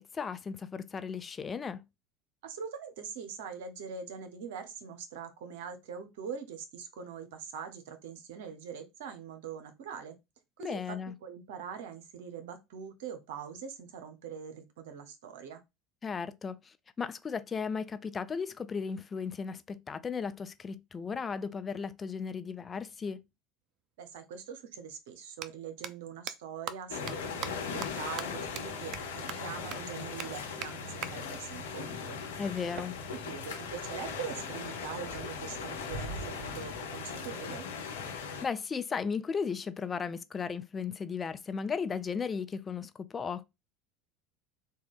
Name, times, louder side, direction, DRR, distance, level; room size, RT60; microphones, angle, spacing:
voice 1, 0.0-1.8 10.6-11.1 16.0-23.2 32.4-33.0 38.4-43.4, left 6 dB, 30° left, 0.4 m, -35 dB
voice 2, 2.4-10.2 10.6-15.6 24.0-32.2 33.1-37.7, right 7 dB, 70° right, 0.7 m, -43 dB
sound 1, 24.1-24.2 25.2-25.5 25.8-25.9 26.3-26.4 26.7-26.8 27.1-27.2 27.4-27.5 27.8-27.9 28.2-28.3 28.6-28.7 28.9-29.0 29.3-29.4 29.7-29.8 30.2-30.3 30.6-30.7 31.0-31.1 32.8-33.8, right 9 dB, 55° right, 0.3 m, -39 dB
sound 2, 26.9-38.4, left 5 dB, 75° left, 0.7 m, -39 dB
3.6 x 2.3 x 3.4 m
hypercardioid pair, 70°, 0 cm